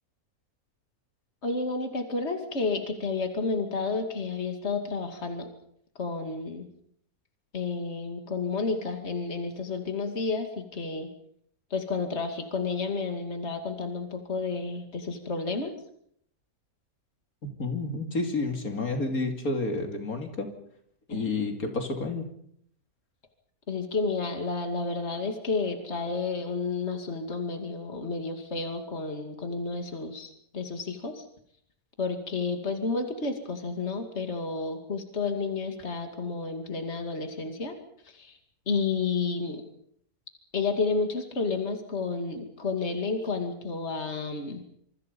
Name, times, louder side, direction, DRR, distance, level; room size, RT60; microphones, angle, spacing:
voice 1, 1.4-5.5 6.0-6.7 7.5-11.1 11.7-15.7 21.1-21.3 23.7-31.2 32.0-37.8 38.0-38.4 38.7-39.6 40.5-44.6, left 4 dB, 45° left, 5 dB, 2.7 m, -31 dB
voice 2, 17.4-20.5 21.1-22.2, left 3 dB, 65° left, 4 dB, 3.2 m, -30 dB
26.5 x 24.5 x 5.4 m, 0.68 s
omnidirectional pair, 1.6 m